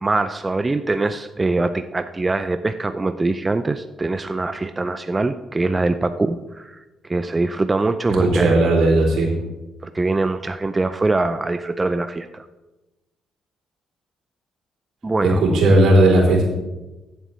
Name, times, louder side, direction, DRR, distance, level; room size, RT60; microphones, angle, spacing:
voice 1, 0.0-8.6 9.8-12.5 15.0-15.4, right 2 dB, 20° right, 10 dB, 0.4 m, -23 dB
voice 2, 8.2-9.3 15.2-16.4, right 1 dB, 80° right, -1 dB, 3.3 m, -15 dB
15.0 x 7.6 x 3.1 m, 1.1 s
cardioid pair, 90°, 0 cm